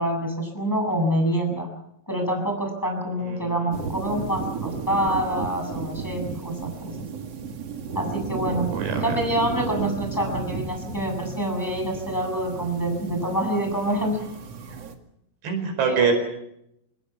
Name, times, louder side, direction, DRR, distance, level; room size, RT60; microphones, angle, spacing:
voice 1, 0.0-1.7 2.1-7.0 7.9-8.7 9.0-14.2 15.9-16.1, right 1 dB, 5° left, 4 dB, 7.1 m, -26 dB
sound 1, 3.7-15.0, right 5 dB, 45° right, 2.6 m, -33 dB
voice 2, 8.7-9.1 15.4-16.1, right 5 dB, 85° right, 6 dB, 6.8 m, -24 dB
27.5 x 20.0 x 7.3 m, 0.79 s
omnidirectional pair, 4.9 m